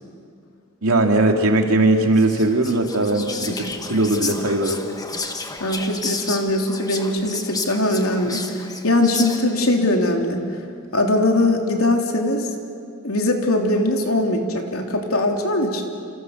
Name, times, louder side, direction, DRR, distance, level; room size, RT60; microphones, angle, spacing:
voice 1, 0.8-4.8, right 2 dB, 85° right, 3 dB, 2.9 m, -19 dB
Whispering, 2.1-9.7, left 4 dB, 20° left, 1.5 m, -32 dB
voice 2, 5.6-10.4 10.9-12.5 13.0-15.8, left 1 dB, 85° left, 2 dB, 3.2 m, -21 dB
29.0 x 27.5 x 6.6 m, 2.5 s
head